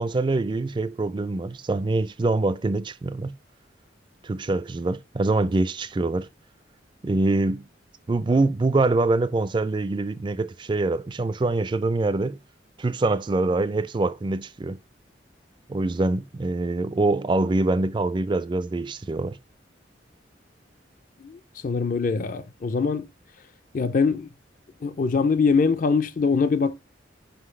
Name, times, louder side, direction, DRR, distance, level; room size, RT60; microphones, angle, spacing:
voice 1, 0.0-3.3 4.2-6.3 7.0-7.7 8.1-12.4 12.8-14.8 15.7-19.4, right 2 dB, 25° right, 0.3 m, -24 dB
voice 2, 21.2-23.1 23.7-24.3 24.8-26.7, left 4 dB, 45° left, 0.4 m, -23 dB
5.8 x 5.3 x 3.2 m
head